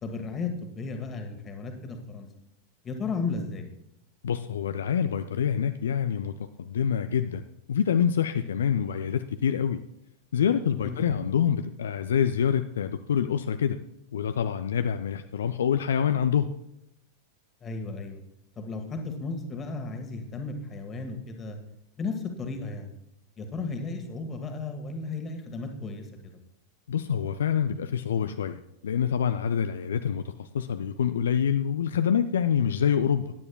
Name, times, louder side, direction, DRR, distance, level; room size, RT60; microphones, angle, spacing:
voice 1, 0.0-2.3 2.8-3.7 10.8-11.2 17.6-18.2 18.5-21.6 22.0-22.9 23.4-26.4, left 4 dB, 25° left, 5 dB, 1.6 m, -34 dB
voice 2, 4.2-6.3 6.6-7.4 7.7-9.8 10.3-13.8 14.1-16.5 26.9-33.3, left 8 dB, 65° left, 10 dB, 0.4 m, -26 dB
16.0 x 9.8 x 2.2 m, 0.82 s
figure-of-eight pair, 90°, 0 cm